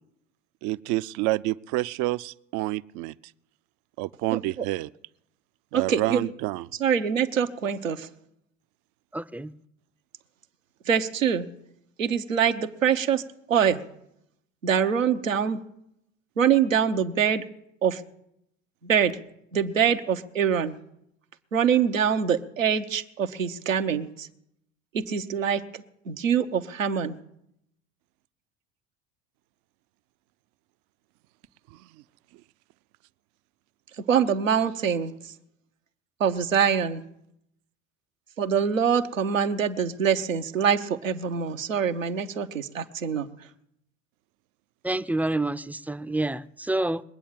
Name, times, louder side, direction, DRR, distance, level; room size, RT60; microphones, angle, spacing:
voice 1, 0.6-3.1 4.0-4.9 5.7-6.7 31.7-31.8, right 18 dB, 50° right, 0.6 m, -28 dB
voice 2, 4.3-4.6 5.7-6.2 6.8-8.1 10.9-11.5 12.0-13.2 13.5-13.8 14.6-15.6 16.4-17.4 17.8-18.0 18.8-19.2 19.5-20.7 21.5-24.3 24.9-27.2 34.1-35.3 36.2-37.0 38.4-43.3, right 7 dB, 90° right, 1.0 m, -24 dB
voice 3, 9.1-9.5 44.8-47.0, right 2 dB, 5° right, 0.5 m, -28 dB
22.0 x 8.5 x 7.4 m
hypercardioid pair, 70°, 38 cm